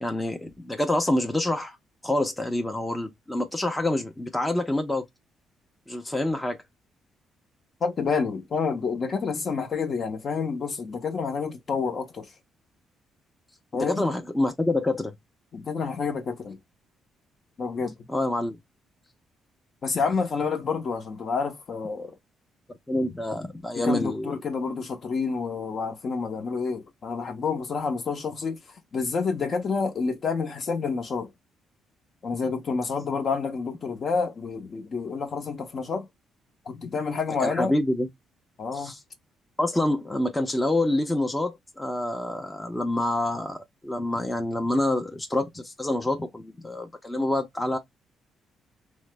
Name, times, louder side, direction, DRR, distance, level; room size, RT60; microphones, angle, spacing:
voice 1, 0.0-1.8 2.0-5.1 5.9-6.6 13.7-15.1 18.1-18.6 22.9-24.3 37.4-38.1 38.7-39.0 39.6-47.8, left 1 dB, 10° left, 0.5 m, -27 dB
voice 2, 7.8-12.3 13.7-14.1 15.5-16.6 17.6-17.9 19.8-22.2 23.8-31.3 32.2-36.1 36.7-37.7 38.6-38.9, left 5 dB, 50° left, 0.7 m, -29 dB
3.1 x 2.0 x 3.1 m
cardioid pair, 90°, 0 cm